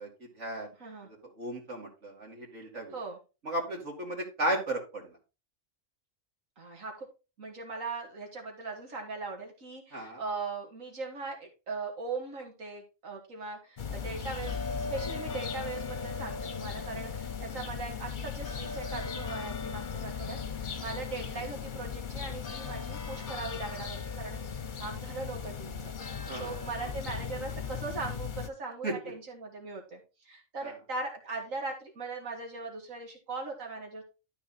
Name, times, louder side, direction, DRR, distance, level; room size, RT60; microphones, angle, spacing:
voice 1, 0.0-0.7 1.0-3.0 3.4-5.2 9.9-10.2 26.3-26.6 26.8-26.9 28.8-28.9 30.6-30.8, right 1 dB, 60° right, -2 dB, 2.7 m, -35 dB
voice 2, 6.6-7.1 7.4-24.4 24.8-25.9 26.3-30.0 30.3-34.0, right 3 dB, 85° right, 1 dB, 2.5 m, -39 dB
sound 1, 13.8-28.5, left 6 dB, 45° left, 0.9 m, -37 dB
12.5 x 4.3 x 4.2 m, 0.30 s
omnidirectional pair, 1.3 m